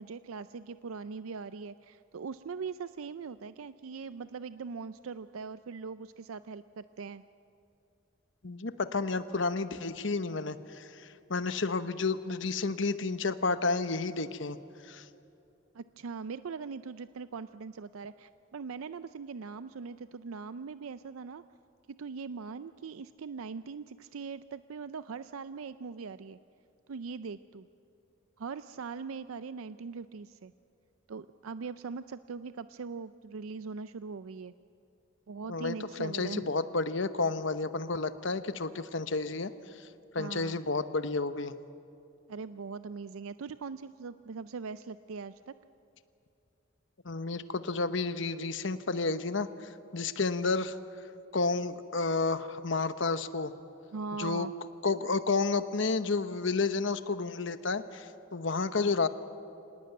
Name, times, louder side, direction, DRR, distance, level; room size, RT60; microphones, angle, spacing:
voice 1, 0.0-7.2 15.7-21.4 22.0-26.4 26.9-27.7 28.4-30.5 31.1-34.5 35.3-36.5 40.2-40.6 42.3-45.5 53.9-54.5, right 5 dB, 85° right, 13 dB, 0.5 m, -41 dB
voice 2, 8.4-14.6 14.8-15.0 35.5-39.5 40.1-41.5 47.0-50.8 51.3-53.5 54.2-54.5 54.8-59.1, left 3 dB, 65° left, 11 dB, 1.0 m, -31 dB
26.0 x 18.5 x 9.3 m, 2.8 s
head